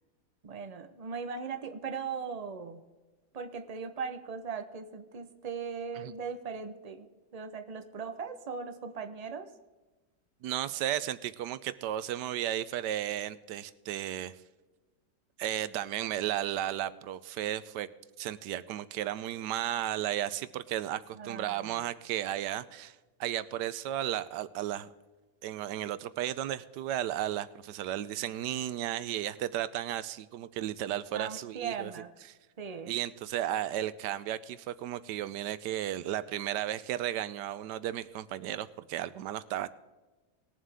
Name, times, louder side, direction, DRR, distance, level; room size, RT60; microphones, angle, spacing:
voice 1, 0.4-2.8 3.3-9.5 21.1-21.8 31.1-32.1 32.6-32.9, right 5 dB, 45° right, 7 dB, 0.5 m, -39 dB
voice 2, 10.4-14.3 15.4-17.9 18.2-24.9 25.4-31.9 32.3-32.4 32.9-39.7, right 12 dB, 85° right, 15 dB, 1.2 m, -34 dB
20.0 x 7.4 x 3.5 m, 1.2 s
omnidirectional pair, 1.8 m